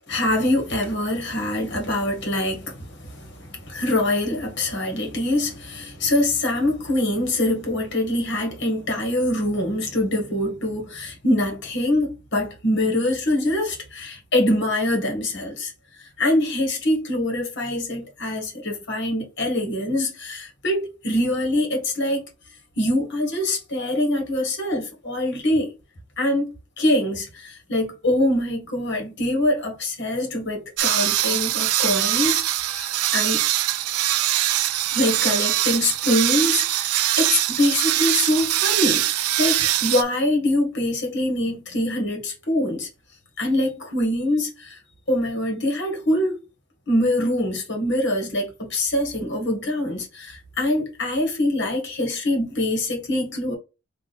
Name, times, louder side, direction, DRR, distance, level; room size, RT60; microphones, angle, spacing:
voice 1, 0.1-15.7 16.2-22.3 22.8-25.7 26.2-26.5 26.8-32.4 32.7-33.4 34.9-42.9 43.4-44.8 45.1-46.4 46.9-53.5, left 1 dB, 50° left, 1.7 m, -24 dB
sound 1, 30.8-40.0, right 14 dB, 90° right, 0.4 m, -22 dB
3.6 x 2.8 x 4.0 m
head